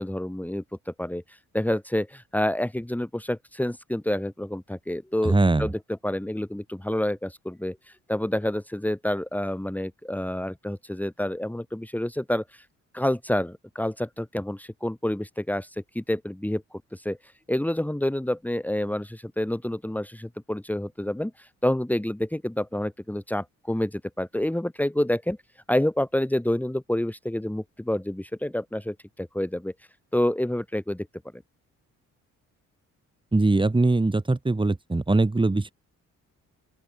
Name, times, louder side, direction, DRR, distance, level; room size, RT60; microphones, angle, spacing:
voice 1, 0.0-7.8 8.1-12.6 12.9-17.2 17.5-25.4 25.7-29.7 30.1-31.1 31.3-31.4, left 1 dB, 5° left, 3.1 m, -28 dB
voice 2, 5.2-5.7 33.3-35.7, right 2 dB, 15° right, 3.6 m, -21 dB
open air
cardioid pair, 90°, 30 cm